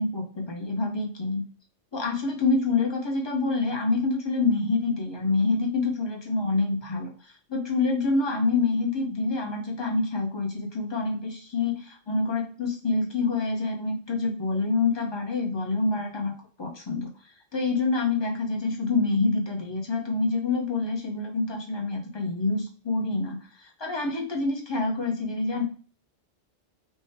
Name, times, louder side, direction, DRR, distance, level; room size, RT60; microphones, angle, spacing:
voice 1, 0.0-1.4 1.9-16.3 16.6-17.1 17.5-25.6, left 3 dB, 25° left, 0 dB, 0.7 m, -27 dB
3.5 x 2.2 x 4.2 m, 0.39 s
omnidirectional pair, 1.2 m